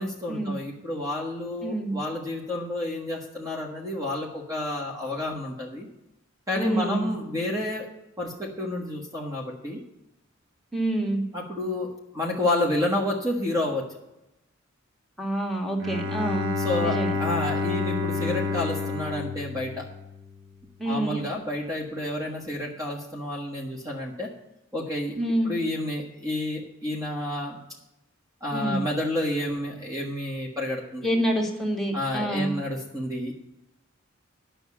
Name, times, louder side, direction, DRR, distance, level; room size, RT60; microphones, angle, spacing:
voice 1, 0.0-5.9 6.5-7.9 8.2-9.8 11.3-13.9 16.6-19.9 20.8-24.3 24.7-25.2 25.4-27.6 28.4-31.2 31.9-33.3, left 1 dB, 15° right, -1 dB, 1.4 m, -30 dB
voice 2, 1.6-2.0 6.5-7.1 10.7-11.2 15.2-16.5 16.8-17.1 20.8-21.2 25.2-25.5 28.5-28.8 31.0-32.5, right 1 dB, ahead, 0 dB, 1.9 m, -27 dB
Bowed string instrument, 15.8-20.5, left 3 dB, 70° right, 1.0 m, -29 dB
10.5 x 6.2 x 8.3 m, 0.92 s
head